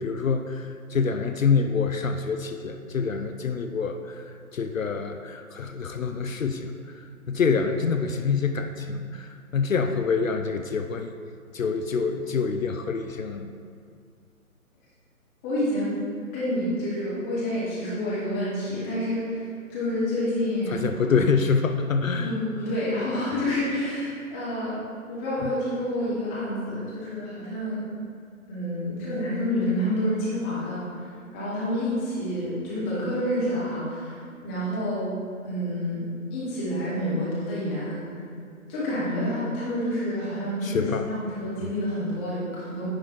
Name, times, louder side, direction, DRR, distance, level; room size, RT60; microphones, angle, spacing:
voice 1, 0.0-11.1 11.5-13.5 20.7-22.4 25.4-25.5 40.6-41.1, left 5 dB, 65° left, 6 dB, 0.5 m, -26 dB
voice 2, 15.4-16.0 16.3-21.2 22.2-24.7 25.1-27.8 28.5-35.1 35.4-36.0 36.3-38.0 38.7-42.9, left 1 dB, 10° left, -9 dB, 0.8 m, -28 dB
9.8 x 3.5 x 4.3 m, 2.2 s
figure-of-eight pair, 140°, 43 cm